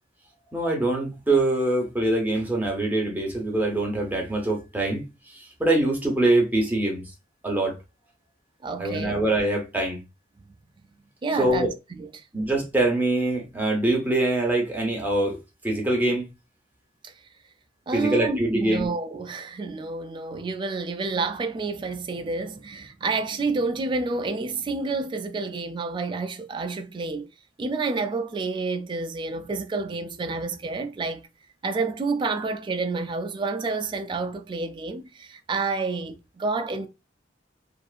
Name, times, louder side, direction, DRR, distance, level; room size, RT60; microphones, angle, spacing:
voice 1, 0.5-5.0 5.3-7.0 7.4-7.7 8.8-10.0 11.4-11.7 12.3-15.4 15.6-16.2 17.9-18.9, right 2 dB, 10° right, 0.8 m, -24 dB
voice 2, 8.6-9.2 11.2-12.3 17.0-17.1 17.9-27.3 27.6-31.3 31.6-36.9, right 3 dB, 25° right, 0.3 m, -29 dB
2.6 x 2.4 x 2.3 m
head